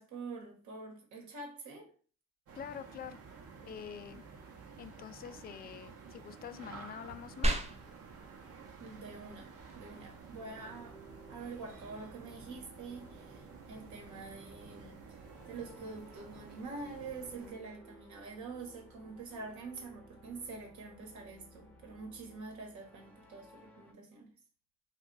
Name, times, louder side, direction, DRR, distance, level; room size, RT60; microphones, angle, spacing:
voice 1, 0.0-1.9 8.8-11.0 11.3-15.2 15.5-24.3, right 3 dB, 70° right, 1 dB, 1.2 m, -46 dB
voice 2, 2.5-3.2 3.6-4.2 4.8-7.5, left 8 dB, 30° left, 10 dB, 0.4 m, -46 dB
sound 1, 2.5-17.5, right 5 dB, 50° right, 0.9 m, -52 dB
sound 2, 7.4-17.4, right 1 dB, 20° right, 0.6 m, -42 dB
sound 3, 10.4-23.9, right 1 dB, 5° left, 0.8 m, -58 dB
2.4 x 2.4 x 3.8 m, 0.41 s
supercardioid pair, 70°, 31 cm